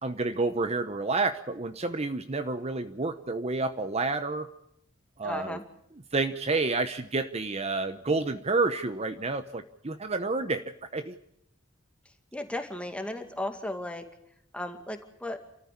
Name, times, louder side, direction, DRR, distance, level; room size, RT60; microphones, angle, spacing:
voice 1, 0.0-4.5 5.2-5.6 6.1-10.6 10.9-11.2, right 3 dB, 30° right, 9 dB, 0.9 m, -29 dB
voice 2, 5.2-5.6 12.3-14.0 14.5-15.4, left 1 dB, 5° left, 5 dB, 2.3 m, -35 dB
29.5 x 14.0 x 8.6 m, 0.76 s
head